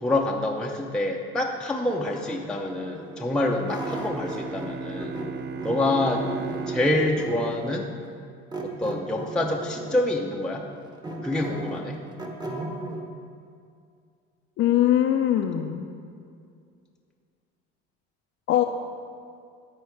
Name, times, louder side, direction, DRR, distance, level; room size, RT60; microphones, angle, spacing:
voice 1, 0.0-5.2 5.6-6.3 6.7-7.9 8.6-10.7 11.2-12.0, left 1 dB, 5° left, -1 dB, 0.7 m, -26 dB
sound 1, 1.8-4.7 5.0-7.7 8.5-10.1 10.5-13.0, right 1 dB, 15° right, 1.2 m, -36 dB
Bowed string instrument, 3.6-8.5, right 5 dB, 35° right, 0.5 m, -37 dB
voice 2, 14.6-15.9 18.5-18.6, left 11 dB, 50° left, 3 dB, 0.6 m, -21 dB
13.0 x 4.6 x 4.6 m, 2.3 s
supercardioid pair, 90°, 29 cm